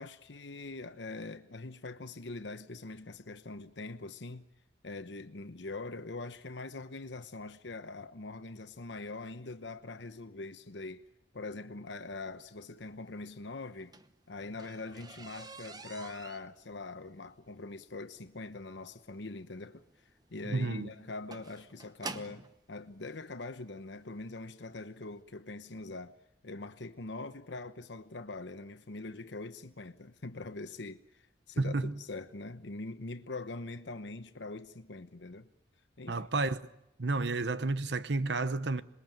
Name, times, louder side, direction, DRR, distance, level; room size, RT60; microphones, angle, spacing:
voice 1, 0.0-4.5 4.8-11.0 11.3-13.9 14.3-26.2 26.4-35.5 36.0-36.3, left 3 dB, 75° left, 1.1 m, -43 dB
sound 1, 13.6-22.5 23.4-23.5 24.1-24.3 24.6-24.7 25.0-25.1, right 3 dB, 20° right, 1.0 m, -48 dB
voice 2, 20.4-20.9 31.6-31.9 36.1-36.6 37.0-38.8, right 3 dB, 70° right, 1.0 m, -31 dB
26.5 x 21.0 x 9.2 m
head